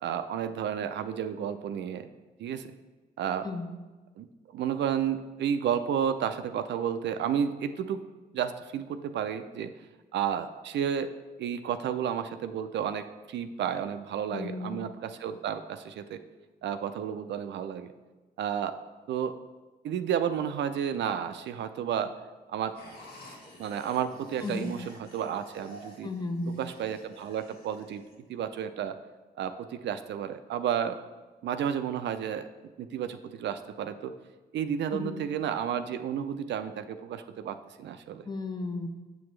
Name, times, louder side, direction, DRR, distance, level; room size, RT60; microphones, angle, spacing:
voice 1, 0.0-2.1 2.4-2.7 3.2-3.5 4.2-8.0 8.3-9.7 10.1-11.1 11.4-16.2 16.6-17.9 18.4-18.8 19.1-19.4 19.8-22.1 22.5-22.7 23.6-26.1 26.6-28.0 28.3-29.0 29.4-31.0 31.4-32.5 32.8-34.1 34.5-38.3, right 8 dB, 75° right, 9 dB, 0.4 m, -32 dB
voice 2, 3.4-3.7 14.3-14.8 24.4-24.7 26.0-26.6 34.9-35.3 38.3-38.9, left 3 dB, 20° left, 5 dB, 0.9 m, -34 dB
sound 1, 22.7-28.1, equal, 60° left, 1.6 m, -50 dB
6.9 x 6.1 x 3.2 m, 1.2 s
supercardioid pair, 50°, 18 cm